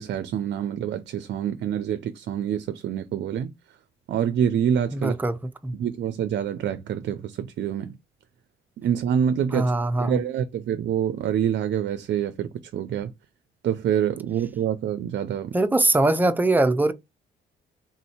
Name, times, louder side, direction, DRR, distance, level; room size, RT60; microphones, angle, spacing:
voice 1, 0.0-3.5 4.1-5.1 5.8-8.0 8.8-9.7 10.0-13.1 13.6-15.6, right 9 dB, 60° right, 0.5 m, -26 dB
voice 2, 4.9-5.4 5.6-5.8 9.5-10.2 15.5-16.9, right 2 dB, 10° right, 0.6 m, -21 dB
3.7 x 2.7 x 4.2 m
cardioid pair, 90°, 20 cm